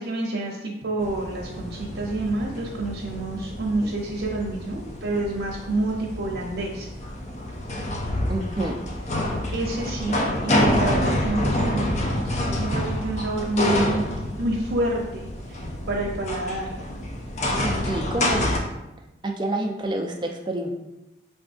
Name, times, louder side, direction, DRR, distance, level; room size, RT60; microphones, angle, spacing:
voice 1, 0.0-6.9 9.5-12.2 12.6-14.1 14.4-16.7, right 2 dB, 90° right, -2 dB, 0.7 m, -28 dB
sound 1, 1.0-18.6, left 1 dB, 40° left, 0.5 m, -27 dB
voice 2, 8.3-8.7 17.6-18.5 19.2-20.7, right 1 dB, 25° right, 2 dB, 0.4 m, -28 dB
5.1 x 3.6 x 2.6 m, 0.94 s
head